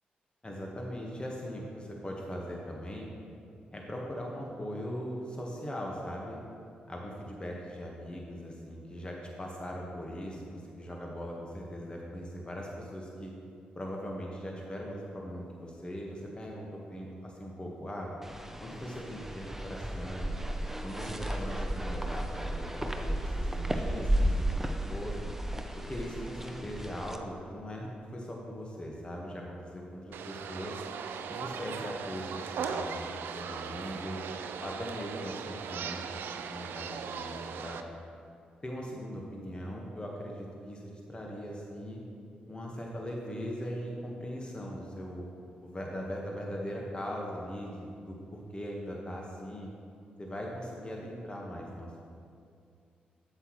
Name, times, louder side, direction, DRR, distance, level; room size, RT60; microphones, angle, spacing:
voice 1, 0.4-3.1 3.7-6.4 6.9-13.3 13.7-18.1 18.6-20.3 20.8-25.2 25.9-30.8 31.3-34.2 34.6-36.0 36.5-37.8 38.6-40.8 41.1-42.0 42.4-45.3 45.6-49.7 50.2-52.0, equal, 25° left, -1 dB, 1.4 m, -40 dB
sound 1, 18.2-27.2, right 1 dB, 10° right, 0.7 m, -33 dB
sound 2, 30.1-37.8, right 7 dB, 75° right, 0.4 m, -38 dB
8.2 x 7.6 x 3.1 m, 2.4 s
supercardioid pair, 45°, 4 cm